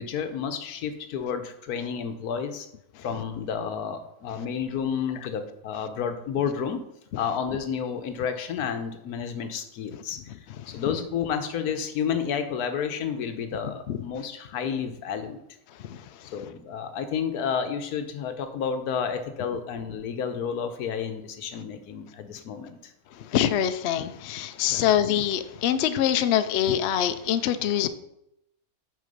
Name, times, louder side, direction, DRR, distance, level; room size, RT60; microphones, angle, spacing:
voice 1, 0.0-2.7 3.0-6.8 7.2-10.2 10.7-15.4 16.3-22.9 24.7-24.8, left 7 dB, 90° left, 8 dB, 1.3 m, -31 dB
voice 2, 23.2-27.9, left 10 dB, 65° left, 11 dB, 0.7 m, -24 dB
6.4 x 4.8 x 5.3 m, 0.81 s
omnidirectional pair, 1.6 m